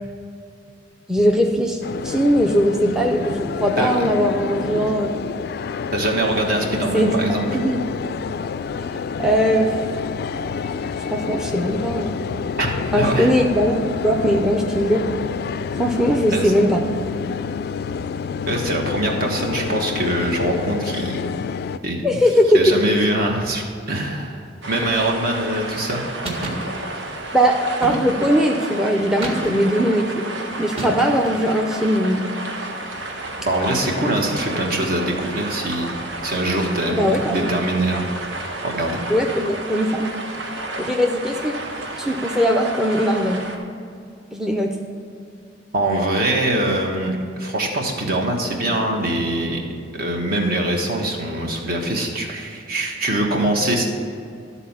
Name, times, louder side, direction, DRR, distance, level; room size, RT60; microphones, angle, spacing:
voice 1, 1.1-1.8 2.0-5.1 6.7-7.2 7.5-7.8 9.2-9.8 11.1-12.1 12.9-13.8 14.0-15.0 15.7-16.8 22.0-22.8 27.3-30.2 30.6-32.2 36.9-37.5 39.1-40.0 40.8-41.5 41.9-43.4 44.3-44.7, equal, 5° right, 2 dB, 0.5 m, -19 dB
sound 1, 1.8-21.8, left 6 dB, 55° left, 0.3 m, -28 dB
voice 2, 5.9-7.5 12.6-12.7 12.9-13.3 16.3-16.5 18.5-21.2 21.8-22.2 22.5-26.0 33.4-38.1 38.6-39.0 45.7-49.6 50.0-53.9, right 1 dB, 55° right, 1 dB, 1.4 m, -23 dB
sound 2, 24.6-43.6, right 2 dB, 90° right, 1.1 m, -32 dB
sound 3, 26.2-26.7 27.8-28.4 29.2-29.8 30.8-31.4, right 1 dB, 35° right, 1.7 m, -29 dB
12.5 x 4.2 x 7.3 m, 2.3 s
head